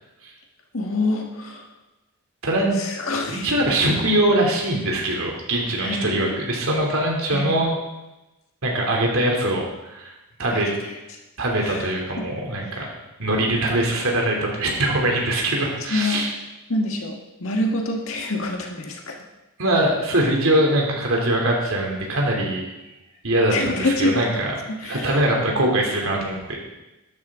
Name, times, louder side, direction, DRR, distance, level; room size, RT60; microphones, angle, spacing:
voice 1, 0.7-1.7 2.8-3.5 5.8-6.2 7.3-7.5 10.5-11.0 11.6-11.8 12.6-12.8 15.9-16.2 16.7-19.2 23.5-24.3 24.8-25.1, left 2 dB, 70° left, 1 dB, 1.8 m, -26 dB
voice 2, 2.4-2.8 3.3-7.7 8.6-9.6 9.9-10.1 10.4-10.7 11.4-12.9 13.2-16.3 19.6-22.6 23.2-24.5 24.8-26.6, right 1 dB, 75° right, -1 dB, 3.0 m, -22 dB
12.5 x 11.0 x 3.8 m, 1.0 s
head